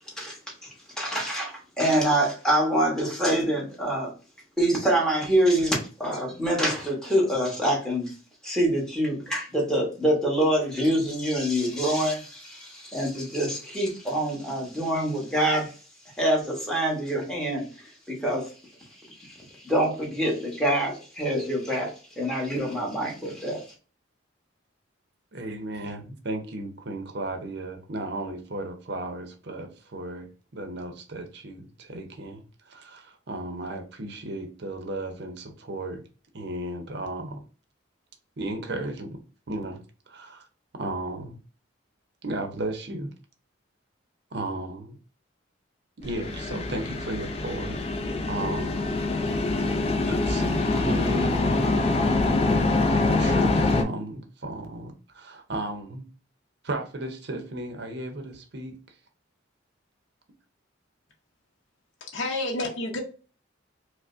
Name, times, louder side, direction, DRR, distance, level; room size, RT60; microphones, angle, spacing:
voice 1, 1.0-4.1 4.6-8.1 8.4-15.7 16.2-18.5 19.1-23.6, right 1 dB, 5° left, 1.1 m, -25 dB
voice 2, 25.3-36.0 36.3-37.4 38.4-39.2 39.5-39.8 40.1-40.5 40.7-41.4 42.2-43.1 44.3-45.0 46.0-47.9 48.3-49.0 50.0-51.9 53.2-56.1 56.6-58.8, right 1 dB, 55° right, 0.6 m, -34 dB
sound 1, 46.0-53.8, left 2 dB, 30° left, 0.4 m, -24 dB
voice 3, 62.0-63.0, left 2 dB, 65° left, 0.7 m, -29 dB
4.8 x 2.1 x 2.5 m
head